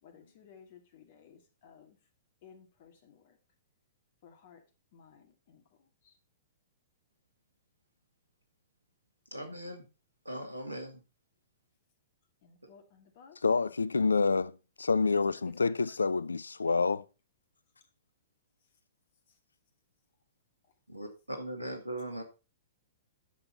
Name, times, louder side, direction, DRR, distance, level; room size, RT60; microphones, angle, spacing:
voice 1, 0.0-2.0 2.4-3.4 4.2-4.6 4.9-6.1 12.4-13.4 15.5-16.1, left 7 dB, 45° left, 2.5 m, -57 dB
voice 2, 9.3-9.9 10.2-11.0 20.9-22.2, right 1 dB, 85° right, 2.5 m, -39 dB
voice 3, 13.4-14.5 14.8-17.0, left 4 dB, 75° left, 0.4 m, -27 dB
10.0 x 7.0 x 4.1 m
figure-of-eight pair, 110°, 0 cm